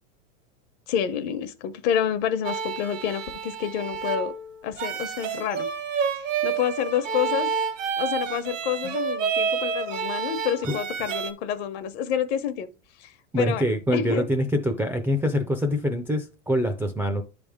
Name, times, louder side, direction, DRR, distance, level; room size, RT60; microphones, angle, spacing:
voice 1, 0.9-4.3 4.6-5.7 6.1-7.5 8.0-12.7 13.0-14.3, left 9 dB, 60° left, 1.0 m, -28 dB
sound 1, 2.4-11.3, right 6 dB, 80° right, 1.1 m, -29 dB
voice 2, 13.3-17.2, equal, 5° right, 0.3 m, -25 dB
10.5 x 3.5 x 3.5 m
supercardioid pair, 125°, 37 cm